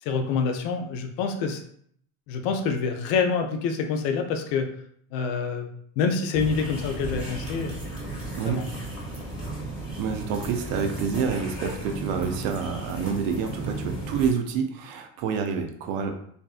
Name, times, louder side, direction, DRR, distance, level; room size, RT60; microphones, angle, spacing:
voice 1, 0.0-1.6 2.3-4.7 5.1-5.7 6.0-7.8 8.5-8.7, left 5 dB, 85° left, 5 dB, 0.6 m, -26 dB
sound 1, 6.3-14.3, right 2 dB, 5° right, 1.4 m, -34 dB
voice 2, 9.9-16.1, right 6 dB, 65° right, 5 dB, 0.6 m, -28 dB
2.6 x 2.5 x 2.4 m, 0.65 s
cardioid pair, 120°, 38 cm